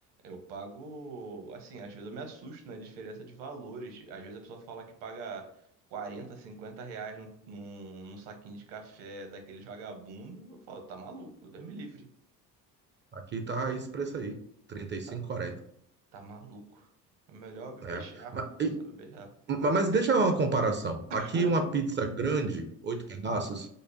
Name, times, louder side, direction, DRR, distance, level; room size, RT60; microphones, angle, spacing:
voice 1, 0.2-5.4 5.9-12.1 15.1-15.2 16.1-16.9 17.3-18.4 19.0-19.3 21.1-21.5, right 3 dB, 60° right, 4 dB, 0.9 m, -43 dB
voice 2, 13.1-14.4 14.7-15.6 17.8-18.0 18.3-18.7 19.5-23.7, right 3 dB, 25° right, 6 dB, 0.4 m, -29 dB
5.0 x 2.1 x 2.7 m, 0.68 s
hypercardioid pair, 55°, 47 cm